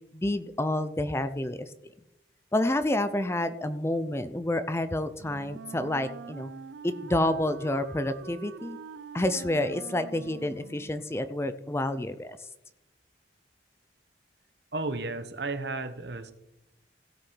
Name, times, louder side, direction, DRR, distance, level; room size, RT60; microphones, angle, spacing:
voice 1, 0.1-1.7 2.5-6.5 6.8-8.8 9.1-12.4, left 1 dB, 15° left, 12 dB, 0.5 m, -29 dB
Wind instrument woodwind instrument, 5.2-11.1, right 6 dB, 85° right, 0.5 m, -44 dB
voice 2, 14.7-16.3, right 3 dB, 65° right, 10 dB, 1.1 m, -33 dB
16.5 x 6.3 x 4.6 m, 0.90 s
head